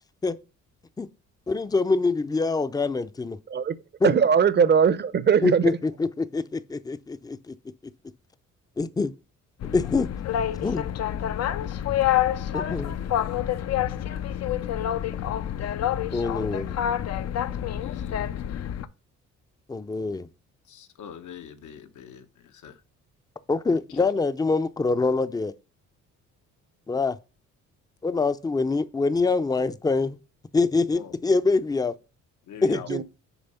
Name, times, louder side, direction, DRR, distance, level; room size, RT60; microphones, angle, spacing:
voice 1, 1.5-3.4 4.0-4.1 5.4-7.6 8.8-9.1 9.7-10.1 10.6-10.9 12.5-13.0 16.1-16.7 19.7-20.3 23.5-25.5 26.9-27.2 28.0-30.2 30.5-31.9 32.6-33.0, left 3 dB, 15° left, 0.5 m, -25 dB
voice 2, 4.0-5.6 32.9-33.0, right 7 dB, 35° right, 0.6 m, -20 dB
Boat Water vehicle, 9.6-18.8, left 11 dB, 55° left, 0.6 m, -27 dB
voice 3, 14.5-14.9 17.7-18.4 20.7-22.7 23.9-24.1 30.9-31.1 32.5-32.9, left 8 dB, 75° left, 1.1 m, -44 dB
7.1 x 4.6 x 5.6 m
cardioid pair, 90°, 30 cm